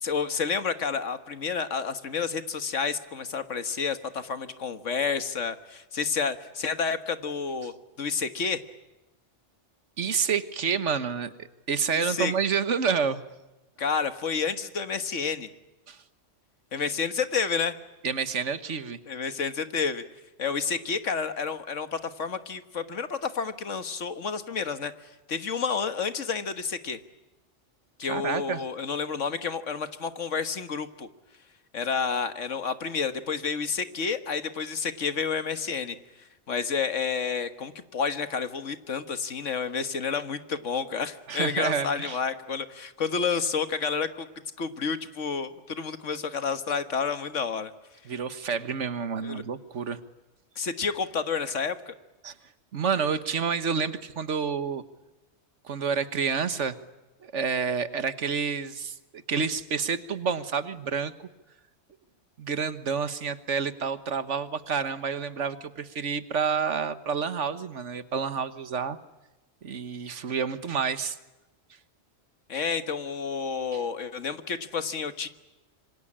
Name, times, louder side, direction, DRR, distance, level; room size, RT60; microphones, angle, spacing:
voice 1, 0.0-8.6 11.9-12.3 13.8-15.5 16.7-17.8 19.1-20.0 20.4-24.9 25.3-27.0 28.0-31.1 31.7-36.0 36.5-44.3 44.6-47.7 49.2-49.4 50.6-51.9 72.5-75.3, left 5 dB, 85° left, 10 dB, 1.8 m, -30 dB
voice 2, 10.0-13.2 15.9-16.0 18.0-19.0 28.0-28.6 41.3-42.2 48.1-50.0 52.2-52.3 52.7-54.8 55.6-56.7 57.2-61.1 62.4-69.0 69.6-71.2 73.7-73.8, right 6 dB, 75° right, 12 dB, 1.6 m, -29 dB
26.5 x 25.0 x 8.8 m, 1.0 s
omnidirectional pair, 1.2 m